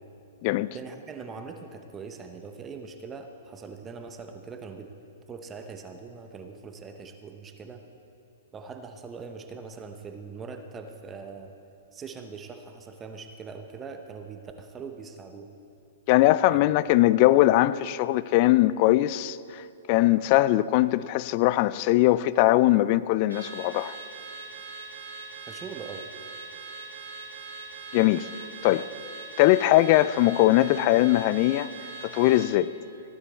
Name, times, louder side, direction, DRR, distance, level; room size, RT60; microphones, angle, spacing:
voice 1, 0.7-4.9 5.3-7.8 8.5-11.5 11.9-15.5 16.5-16.7 25.5-26.1, right 5 dB, 20° right, 6 dB, 0.8 m, -41 dB
voice 2, 16.1-24.0 27.9-28.3 28.6-28.9 29.4-31.7 32.0-32.7, left 16 dB, 45° left, 17 dB, 0.3 m, -21 dB
Car / Alarm, 23.3-32.6, right 4 dB, 75° right, 2.2 m, -41 dB
15.5 x 9.9 x 4.2 m, 2.8 s
hypercardioid pair, 115°, 0 cm